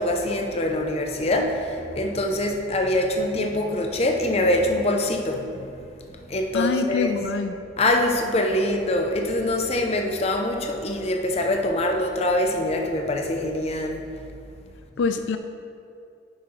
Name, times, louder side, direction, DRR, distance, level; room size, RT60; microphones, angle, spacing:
voice 1, 0.0-7.2 7.8-14.1, left 1 dB, 35° left, 3 dB, 0.6 m, -24 dB
voice 2, 6.5-7.5 15.0-15.4, left 5 dB, 85° left, 8 dB, 0.4 m, -24 dB
10.0 x 5.8 x 3.2 m, 2.5 s
head